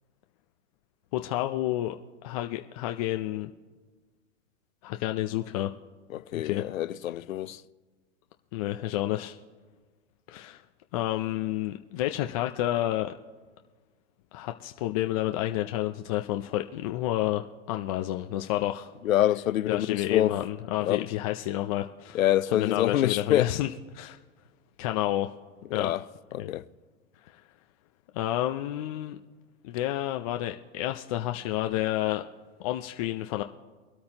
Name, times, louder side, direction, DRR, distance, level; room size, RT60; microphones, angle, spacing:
voice 1, 1.1-2.0 2.2-3.5 4.8-5.7 6.3-6.7 8.5-9.4 10.3-10.6 10.9-13.1 14.3-18.9 19.7-22.2 22.5-23.7 23.9-24.2 24.8-25.3 25.7-25.9 26.4-26.5 27.3-27.4 28.1-29.2 29.6-32.2 32.6-33.4, left 14 dB, 30° left, 0.4 m, -30 dB
voice 2, 6.1-7.6 19.0-20.3 20.8-21.0 22.1-23.5 25.7-26.0 26.3-26.6, left 12 dB, 85° left, 0.7 m, -26 dB
24.0 x 8.6 x 2.9 m
hypercardioid pair, 135°, 40 cm